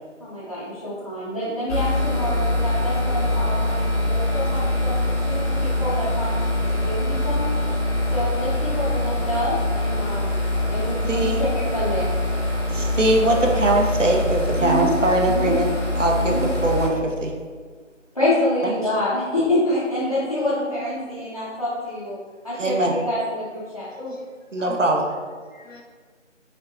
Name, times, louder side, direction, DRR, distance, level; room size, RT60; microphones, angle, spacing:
voice 1, 0.2-5.0 5.3-7.5 8.1-12.1 14.6-14.9 15.2-15.5 16.1-16.5 18.1-22.2 22.4-23.9, left 1 dB, 30° left, -12 dB, 0.9 m, -27 dB
sound 1, 1.7-16.9, left 1 dB, 70° left, 1.3 m, -24 dB
voice 2, 11.1-11.5 12.7-15.7 15.9-17.3 18.6-18.7 22.6-22.9 24.5-25.0, right 1 dB, 75° right, 1 dB, 0.9 m, -21 dB
voice 3, 23.8-25.2 25.5-25.8, left 1 dB, 90° left, -2 dB, 1.3 m, -39 dB
6.3 x 2.7 x 2.6 m, 1.5 s
figure-of-eight pair, 165°, 37 cm